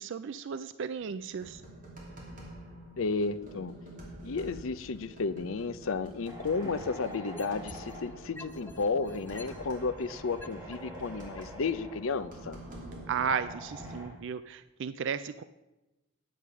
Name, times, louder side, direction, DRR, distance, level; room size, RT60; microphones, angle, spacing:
voice 1, 0.0-1.6 13.1-15.4, right 6 dB, 55° right, 13 dB, 0.3 m, -34 dB
sound 1, 1.0-14.0, right 1 dB, 35° right, 2.9 m, -48 dB
voice 2, 3.0-3.7 4.2-12.6, left 4 dB, 65° left, 14 dB, 0.6 m, -33 dB
sound 2, 6.3-14.1, equal, 10° right, 2.8 m, -48 dB
sound 3, 6.4-8.0 8.4-10.8 11.4-11.5, left 1 dB, 10° left, 0.5 m, -47 dB
10.0 x 8.4 x 6.0 m, 1.0 s
head